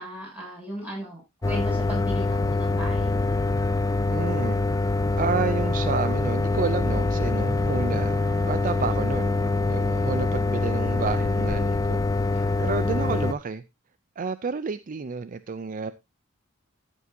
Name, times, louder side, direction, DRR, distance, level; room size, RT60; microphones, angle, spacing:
voice 1, 0.0-3.3 12.3-12.5, equal, 5° right, 7.9 m, -37 dB
sound 1, 1.4-13.3, left 2 dB, 15° left, 0.5 m, -24 dB
voice 2, 4.1-4.6 5.2-9.4 9.7-12.0 12.6-13.6 14.2-15.9, right 5 dB, 40° right, 0.5 m, -30 dB
14.0 x 8.4 x 2.7 m
head